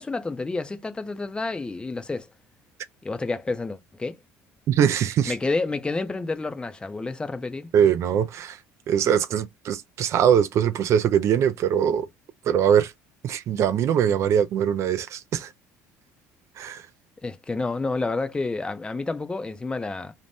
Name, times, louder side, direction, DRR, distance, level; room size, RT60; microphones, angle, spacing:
voice 1, 0.0-2.3 3.0-4.2 5.3-7.7 17.2-20.1, left 3 dB, 15° left, 0.4 m, -29 dB
voice 2, 4.7-5.4 7.7-8.6 8.9-12.1 12.4-12.9 13.2-15.5 16.6-16.9, right 9 dB, 50° right, 0.3 m, -22 dB
2.6 x 2.1 x 3.3 m
cardioid pair, 105°, 6 cm